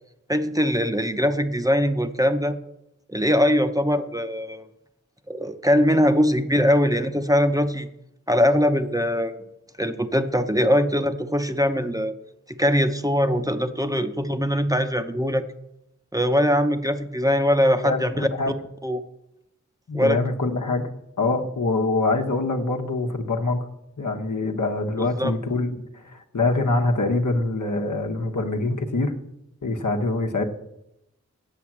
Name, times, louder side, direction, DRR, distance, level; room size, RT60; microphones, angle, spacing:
voice 1, 0.3-2.6 3.1-4.7 5.3-7.9 8.3-9.3 9.8-12.1 12.6-15.4 16.1-18.3 18.8-19.0 19.9-20.2 25.0-25.3, equal, 10° right, 8 dB, 0.7 m, -21 dB
voice 2, 17.8-18.5 19.9-20.8 21.2-23.7 24.0-29.1 29.6-30.4, left 2 dB, 85° left, 4 dB, 1.1 m, -24 dB
8.3 x 7.6 x 7.3 m, 0.85 s
wide cardioid pair, 50°, 30 cm